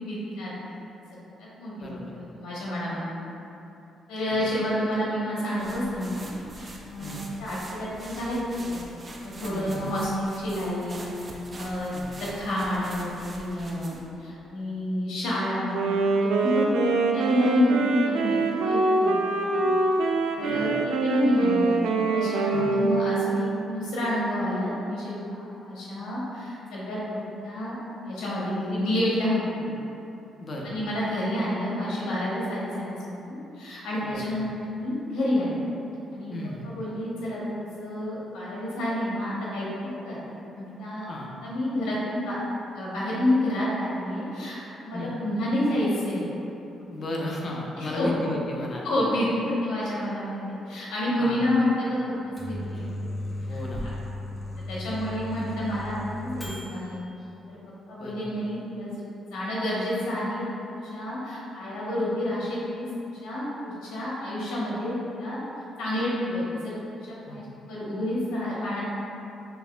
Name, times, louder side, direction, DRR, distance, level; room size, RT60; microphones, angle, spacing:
voice 1, 0.0-0.5 1.1-3.1 4.1-8.8 9.2-11.1 11.5-11.9 12.2-15.8 16.2-19.7 20.0-20.1 20.3-27.7 28.0-29.8 30.6-35.6 36.1-36.3 36.6-39.7 40.0-40.2 40.5-41.1 41.4-42.4 42.7-46.3 46.8-46.9 47.8-48.1 48.8-52.9 53.5-53.9 54.7-57.0 57.5-57.6 57.9-59.0 59.3-65.4 65.8-68.8, left 1 dB, 85° left, -7 dB, 0.9 m, -29 dB
voice 2, 1.8-2.1 4.2-4.3 7.0-7.3 9.5-9.9 11.9-12.1 20.4-20.7 22.5-22.8 30.4-30.7 34.1-34.2 36.3-36.7 41.1-41.3 44.9-45.1 46.9-49.1 51.2-51.5 53.5-53.9 58.0-58.3 67.3-67.4, left 1 dB, 45° left, -2 dB, 0.7 m, -35 dB
sound 1, 5.6-14.1, right 2 dB, 35° right, 0.5 m, -44 dB
Wind instrument woodwind instrument, 15.7-23.7, right 3 dB, 90° right, 0.3 m, -24 dB
Microwave oven, 52.1-56.9, left 1 dB, 15° left, 0.9 m, -35 dB
5.7 x 3.1 x 2.2 m, 2.9 s
cardioid pair, 90°, 0 cm